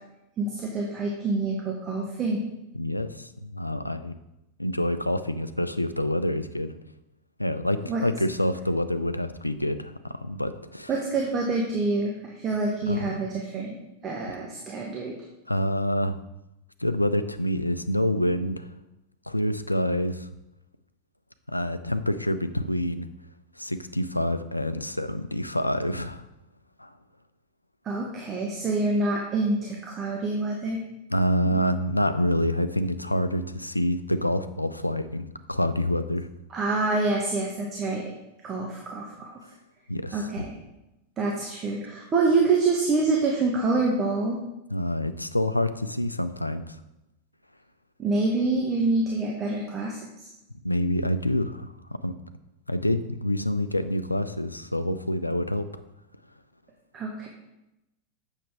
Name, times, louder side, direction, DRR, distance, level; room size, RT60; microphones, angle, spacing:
voice 1, 0.4-2.4 7.9-8.0 10.9-15.1 27.8-30.8 36.5-38.0 38.4-39.4 40.1-40.5 41.2-44.4 48.0-50.0 56.9-57.3, right 3 dB, 25° right, -1 dB, 1.1 m, -26 dB
voice 2, 2.7-4.1 4.6-6.7 7.4-10.9 12.9-13.1 15.5-16.2 16.8-18.7 19.3-20.3 21.5-23.1 23.6-26.2 26.8-26.9 31.1-36.3 39.9-40.5 44.7-46.8 50.6-51.7 52.0-52.1 52.7-55.7, left 1 dB, 85° left, 11 dB, 0.4 m, -27 dB
7.7 x 6.3 x 3.4 m, 0.91 s
figure-of-eight pair, 90°, 0 cm